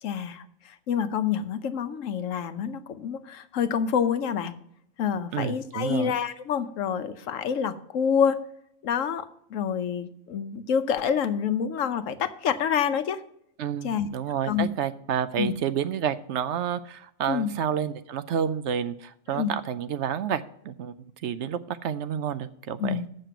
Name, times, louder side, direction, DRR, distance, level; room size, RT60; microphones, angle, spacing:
voice 1, 0.0-4.5 5.0-8.4 8.8-13.2 13.8-14.1 14.4-14.7 15.4-15.5 17.3-17.5 19.3-19.5 22.8-23.0, left 7 dB, 80° left, 11 dB, 1.1 m, -27 dB
voice 2, 5.3-6.1 13.6-20.9 21.2-23.0, right 8 dB, 70° right, 13 dB, 0.9 m, -29 dB
7.6 x 6.6 x 7.9 m, 0.74 s
omnidirectional pair, 1.3 m